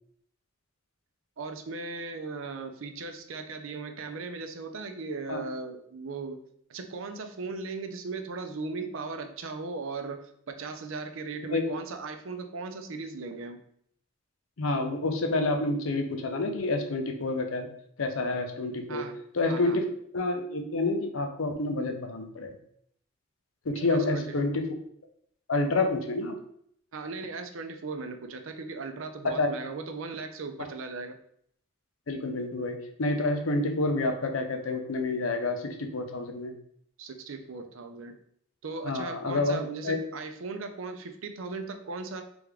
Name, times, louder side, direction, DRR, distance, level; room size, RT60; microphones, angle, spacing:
voice 1, 1.4-6.4 6.7-13.6 18.9-19.2 19.4-19.8 23.8-24.3 26.9-31.2 37.0-38.2 38.6-42.2, right 4 dB, 80° right, 6 dB, 0.5 m, -37 dB
voice 2, 14.6-17.7 18.0-19.1 19.3-19.9 20.1-22.5 23.7-24.7 25.5-26.4 29.4-29.5 32.1-36.5 38.9-40.0, left 2 dB, 85° left, 5 dB, 0.6 m, -28 dB
3.5 x 3.4 x 3.4 m, 0.67 s
head